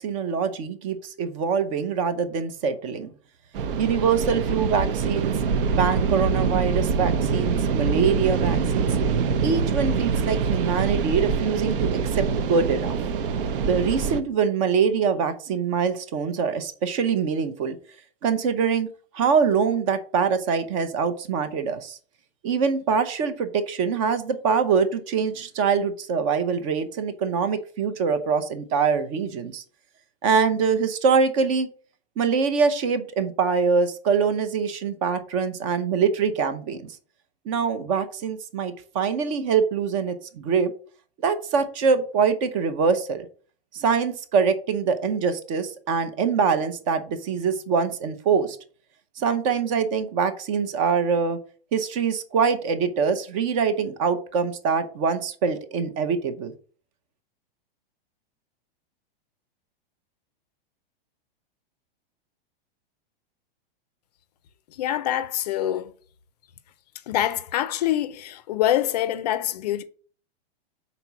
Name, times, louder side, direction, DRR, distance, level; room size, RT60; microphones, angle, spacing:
voice 1, 0.0-3.1 3.8-5.4 5.8-8.9 9.4-13.0 13.7-17.8 18.2-18.9 19.1-22.0 22.4-29.6 30.2-31.7 32.2-37.0 37.5-40.7 41.2-43.3 43.7-48.6 49.2-51.4 51.7-56.5, right 6 dB, 35° right, 0.7 m, -24 dB
sound 1, 3.5-14.2, right 5 dB, 65° right, 0.8 m, -24 dB
voice 2, 64.7-65.9 67.1-69.8, left 12 dB, 45° left, 0.5 m, -25 dB
5.8 x 4.1 x 5.8 m
supercardioid pair, 165°, 30 cm